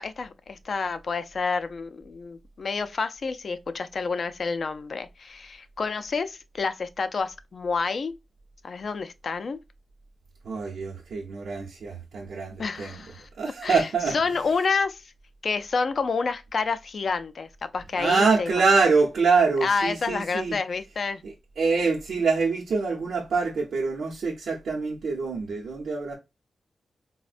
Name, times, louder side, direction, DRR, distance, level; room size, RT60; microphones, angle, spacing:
voice 1, 0.0-8.1 8.6-9.6 12.6-13.3 13.6-15.0 15.4-18.6 19.6-21.2, left 4 dB, 50° left, 0.3 m, -29 dB
voice 2, 10.4-13.0 13.4-14.2 18.0-20.6 21.2-26.2, right 4 dB, 90° right, 0.7 m, -25 dB
4.1 x 2.1 x 2.4 m
wide cardioid pair, 150°, 0 cm